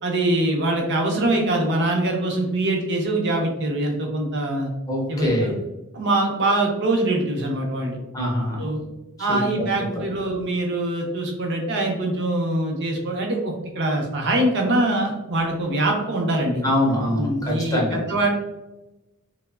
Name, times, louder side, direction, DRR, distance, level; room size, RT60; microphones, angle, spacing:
voice 1, 0.0-4.7 5.1-5.6 5.9-8.0 8.6-8.8 9.2-16.6 17.1-18.3, right 1 dB, 50° right, 1 dB, 0.5 m, -23 dB
voice 2, 4.9-5.5 8.1-8.6 9.3-9.4 9.9-10.0 16.6-18.0, left 1 dB, 15° left, -2 dB, 0.5 m, -23 dB
2.9 x 2.0 x 2.2 m, 0.99 s
head